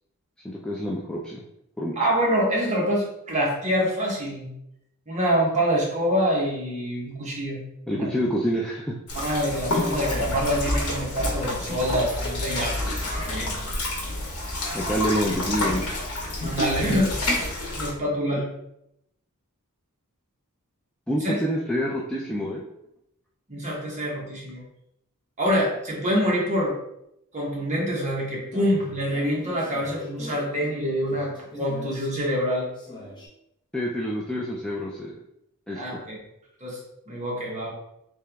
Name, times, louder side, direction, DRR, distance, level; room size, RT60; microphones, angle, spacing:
voice 1, 0.4-1.4 1.8-1.9 7.9-9.0 14.7-15.9 21.1-22.6 33.7-35.2 35.7-36.0, equal, 5° left, -4 dB, 0.3 m, -27 dB
voice 2, 1.9-4.5 5.1-7.6 7.9-8.1 9.1-13.7 16.4-17.1 17.8-18.5 21.2-21.3 23.5-24.6 25.4-26.8 27.3-32.7 35.7-36.2 36.6-36.8 37.1-37.7, equal, 30° right, -3 dB, 1.1 m, -26 dB
sound 1, 9.1-17.9, left 1 dB, 75° left, 1.0 m, -28 dB
sound 2, 28.3-33.3, left 1 dB, 20° left, 0.8 m, -42 dB
3.3 x 2.9 x 3.4 m, 0.80 s
head